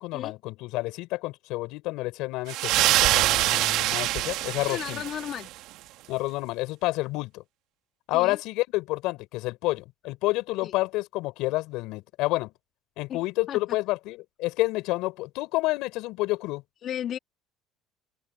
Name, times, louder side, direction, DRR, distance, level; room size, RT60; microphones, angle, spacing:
voice 1, 0.0-5.0 6.1-7.4 8.1-12.5 13.0-16.6, left 20 dB, 75° left, 4.5 m, -29 dB
sound 1, 2.5-5.5, right 16 dB, 70° right, 2.4 m, -24 dB
voice 2, 4.7-5.5 8.1-8.4 10.6-10.7 13.1-13.2 13.5-13.6 16.8-17.2, left 10 dB, 55° left, 3.1 m, -34 dB
open air
supercardioid pair, 85°, 0 cm